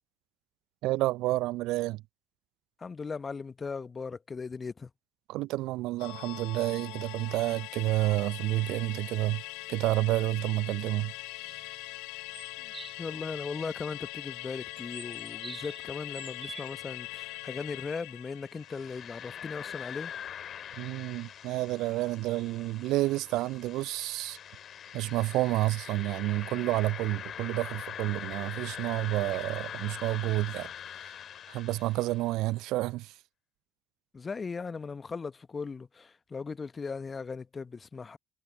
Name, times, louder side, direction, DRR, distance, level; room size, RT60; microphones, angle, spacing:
voice 1, 0.8-2.0 5.3-9.4 9.7-11.1 20.8-24.4 24.9-30.7 31.5-33.1, right 18 dB, 60° right, 0.3 m, -29 dB
voice 2, 2.8-4.9 12.6-12.7 13.0-20.1 34.1-38.2, left 5 dB, 30° left, 1.1 m, -38 dB
Musical instrument, 6.0-20.7 21.0-21.1, left 25 dB, 65° left, 3.2 m, -42 dB
sound 1, 12.3-13.0 14.7-15.9 16.1-16.7, right 4 dB, 25° right, 1.5 m, -45 dB
sound 2, 18.5-32.4, left 9 dB, 45° left, 2.2 m, -43 dB
figure-of-eight pair, 55°, 0 cm